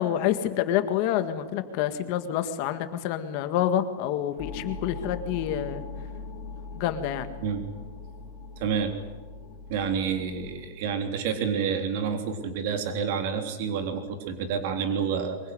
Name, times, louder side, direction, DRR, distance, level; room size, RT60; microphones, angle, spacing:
voice 1, 0.0-5.8 6.8-7.3, left 11 dB, 40° left, 9 dB, 1.8 m, -27 dB
sound 1, 4.4-10.7, left 3 dB, 20° left, 5.4 m, -40 dB
voice 2, 8.6-8.9 9.7-15.4, right 6 dB, 45° right, 6 dB, 3.5 m, -29 dB
24.0 x 22.0 x 9.7 m, 1.3 s
supercardioid pair, 175°, 0 cm